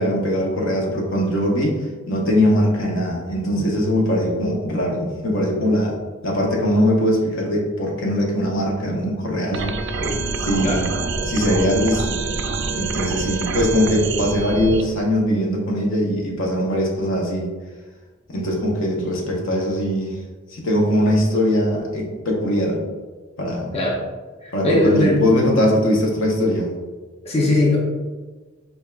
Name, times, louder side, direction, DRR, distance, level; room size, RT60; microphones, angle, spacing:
voice 1, 0.0-1.8 2.1-6.0 6.2-9.8 10.4-10.9 11.2-12.2 12.7-17.5 18.3-20.2 20.5-22.8 23.4-23.7 24.5-26.7, equal, 65° left, -1 dB, 0.8 m, -21 dB
sound 1, 9.5-14.8, right 4 dB, 60° right, 0.3 m, -26 dB
voice 2, 24.4-25.2 27.2-27.8, left 1 dB, 30° left, -4 dB, 0.6 m, -19 dB
4.1 x 3.4 x 2.3 m, 1.3 s
head